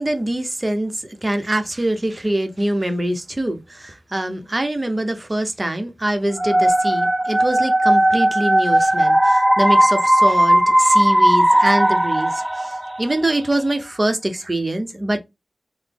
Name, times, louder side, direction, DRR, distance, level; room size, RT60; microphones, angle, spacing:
voice 1, 0.0-15.2, right 1 dB, 30° right, 0.7 m, -24 dB
sound 1, 6.4-13.2, right 1 dB, 15° right, 0.3 m, -16 dB
3.9 x 2.0 x 3.3 m
wide cardioid pair, 60°, 0 cm